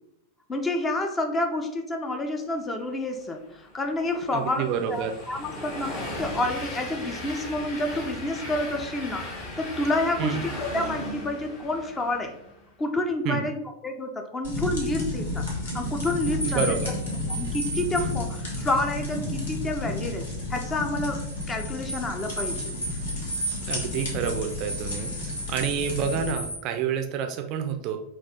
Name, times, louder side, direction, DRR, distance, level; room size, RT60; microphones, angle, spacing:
voice 1, 0.5-12.4 12.8-15.5 15.7-16.7 17.3-22.7, left 2 dB, 15° left, 4 dB, 0.5 m, -29 dB
Train, 3.2-12.7, left 1 dB, 40° left, 1.5 m, -37 dB
voice 2, 4.3-5.1 10.2-10.4 13.3-13.4 16.5-16.9 23.7-28.0, right 7 dB, 40° right, 5 dB, 0.4 m, -28 dB
sound 1, 14.4-26.3, left 2 dB, 60° left, 1.2 m, -32 dB
sound 2, 16.0-26.6, right 1 dB, 80° left, 0.8 m, -36 dB
4.0 x 2.4 x 3.4 m, 0.79 s
figure-of-eight pair, 90°, 0 cm